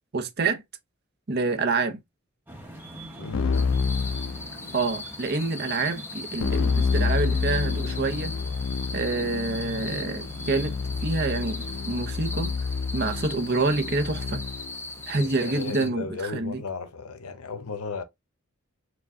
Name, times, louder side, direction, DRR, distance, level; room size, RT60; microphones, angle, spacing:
voice 1, 0.1-0.6 1.3-2.0 4.7-8.3 8.9-12.5 12.9-14.4 15.1-16.6, right 3 dB, 50° right, 0.7 m, -27 dB
sound 1, 2.5-12.1, right 1 dB, 10° right, 1.0 m, -45 dB
voice 2, 3.2-3.7 15.1-18.0, left 4 dB, 90° left, 0.8 m, -35 dB
Keyboard (musical), 3.3-5.0 6.4-14.8, left 5 dB, 65° left, 0.4 m, -28 dB
sound 2, 3.5-15.9, left 2 dB, 10° left, 0.6 m, -39 dB
4.8 x 2.3 x 3.6 m
head